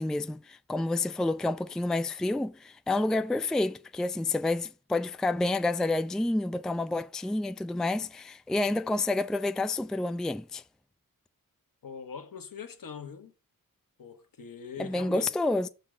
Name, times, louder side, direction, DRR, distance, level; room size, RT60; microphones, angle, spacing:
voice 1, 0.0-10.6 14.8-15.7, left 2 dB, ahead, 0.4 m, -29 dB
voice 2, 11.8-13.3 14.0-15.3, left 6 dB, 65° left, 1.2 m, -42 dB
6.1 x 3.9 x 6.0 m
cardioid pair, 60°, 36 cm